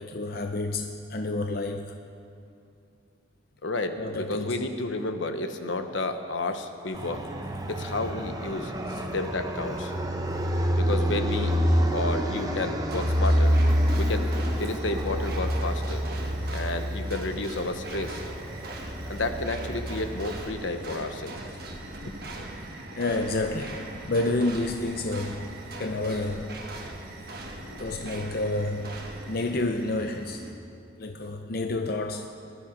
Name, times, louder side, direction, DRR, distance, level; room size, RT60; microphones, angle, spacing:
voice 1, 0.0-2.0 4.0-4.6 8.9-9.0 23.0-26.6 27.8-30.4 31.0-32.3, left 2 dB, 50° left, 0.6 m, -30 dB
voice 2, 3.6-7.3 7.7-8.7 9.1-9.9 10.8-11.5 11.9-13.6 13.9-14.3 14.6-16.0 16.5-18.2 19.1-21.4 22.0-22.3 27.7-27.8 31.0-31.2, left 2 dB, 75° left, 1.0 m, -31 dB
Fixed-wing aircraft airplane, 6.9-20.5, equal, 20° right, 0.9 m, -27 dB
sound 1, 12.9-30.5, right 1 dB, 50° right, 1.4 m, -40 dB
19.5 x 11.5 x 5.3 m
head